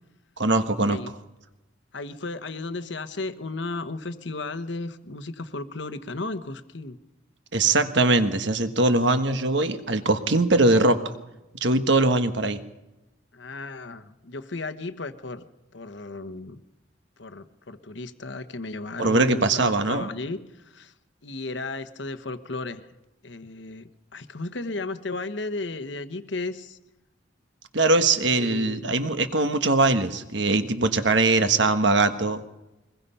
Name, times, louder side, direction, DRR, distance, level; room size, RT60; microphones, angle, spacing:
voice 1, 0.4-1.0 7.5-11.0 11.6-12.6 19.0-20.1 27.7-32.4, right 2 dB, 60° right, 9 dB, 1.4 m, -21 dB
voice 2, 1.9-7.0 13.3-15.4 15.7-16.6 17.2-20.9 21.2-22.9 23.2-26.8 28.2-29.0, left 3 dB, 65° left, 10 dB, 1.2 m, -34 dB
23.0 x 20.5 x 5.7 m, 1.0 s
head